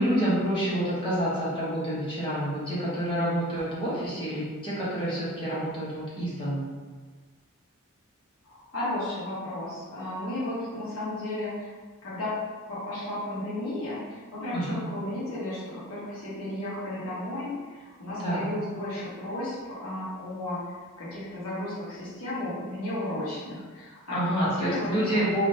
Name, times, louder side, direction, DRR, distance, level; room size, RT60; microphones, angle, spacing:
voice 1, 0.0-6.6 14.5-14.8 18.2-18.4 24.1-25.5, right 1 dB, 25° left, -9 dB, 0.9 m, -28 dB
voice 2, 8.4-11.7 12.0-12.3 12.7-25.2, left 1 dB, 70° left, -10 dB, 1.0 m, -34 dB
3.2 x 2.4 x 2.6 m, 1.4 s
head